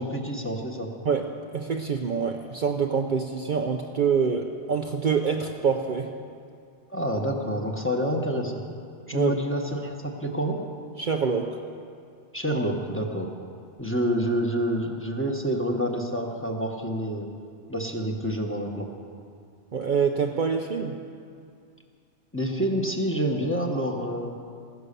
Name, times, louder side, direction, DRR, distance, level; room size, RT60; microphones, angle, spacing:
voice 1, 0.0-0.9 6.9-8.6 9.1-10.6 12.3-13.3 13.8-17.3 17.7-18.9 22.3-24.3, equal, 10° left, 0 dB, 1.4 m, -28 dB
voice 2, 1.0-6.1 9.1-9.3 11.0-11.6 19.7-21.0, right 6 dB, 50° right, 3 dB, 0.8 m, -26 dB
15.5 x 11.0 x 6.8 m, 2.3 s
omnidirectional pair, 1.1 m